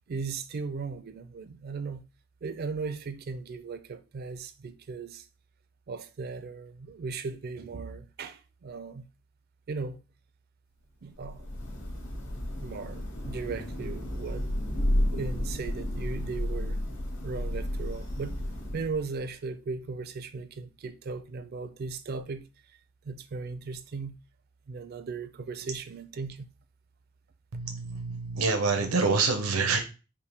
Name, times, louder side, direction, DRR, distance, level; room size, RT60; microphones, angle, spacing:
voice 1, 0.1-2.0 2.4-5.3 5.9-9.1 9.7-10.0 11.0-11.5 12.6-14.5 14.9-16.8 17.2-18.4 18.7-22.5 23.0-24.2 24.7-26.5, right 4 dB, 45° right, 0.4 m, -37 dB
Thunder / Rain, 11.1-19.2, left 1 dB, 60° left, 1.7 m, -32 dB
voice 2, 27.5-29.8, right 4 dB, 90° right, 0.7 m, -26 dB
5.3 x 2.1 x 3.3 m
head